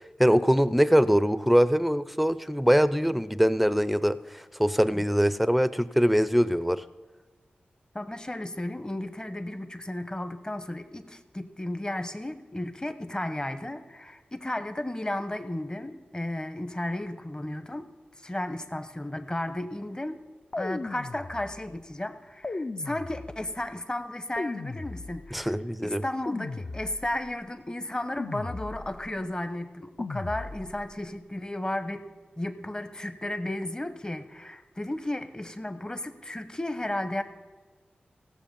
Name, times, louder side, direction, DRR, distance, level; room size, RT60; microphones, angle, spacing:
voice 1, 0.2-4.2 4.6-6.8 25.3-26.0, equal, ahead, 15 dB, 0.5 m, -22 dB
voice 2, 7.9-17.9 18.2-20.2 20.6-25.6 25.8-32.0 32.4-37.2, left 1 dB, 20° left, 10 dB, 0.9 m, -34 dB
sound 1, 20.5-21.7 22.4-23.6 24.4-25.5 26.3-27.3 28.2-29.1 30.0-30.9, left 3 dB, 45° left, 0.5 m, -36 dB
16.0 x 6.8 x 5.4 m, 1.3 s
cardioid pair, 40°, 4 cm